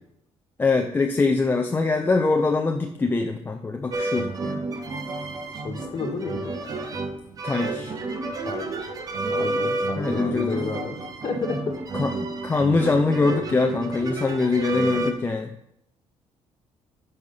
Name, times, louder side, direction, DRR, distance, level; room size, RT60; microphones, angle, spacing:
voice 1, 0.6-4.6 7.4-7.9 10.0-10.6 11.9-15.5, left 3 dB, 15° left, 4 dB, 0.6 m, -23 dB
sound 1, 3.9-15.1, right 2 dB, 30° right, 0.9 m, -30 dB
voice 2, 5.5-6.5 8.5-8.8 9.3-11.0 11.2-11.6, left 4 dB, 40° left, 2 dB, 1.9 m, -31 dB
9.9 x 5.6 x 5.5 m, 0.77 s
cardioid pair, 160°, 12 cm